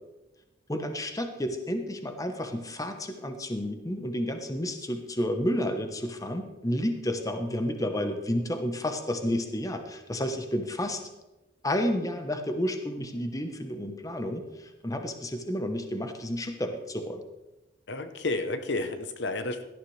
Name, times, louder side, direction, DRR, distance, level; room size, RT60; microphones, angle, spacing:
voice 1, 0.7-11.0 11.6-17.2, equal, 20° left, 6 dB, 1.0 m, -31 dB
voice 2, 17.9-19.6, left 2 dB, 60° left, 9 dB, 0.9 m, -31 dB
17.5 x 12.5 x 3.3 m, 1.0 s
head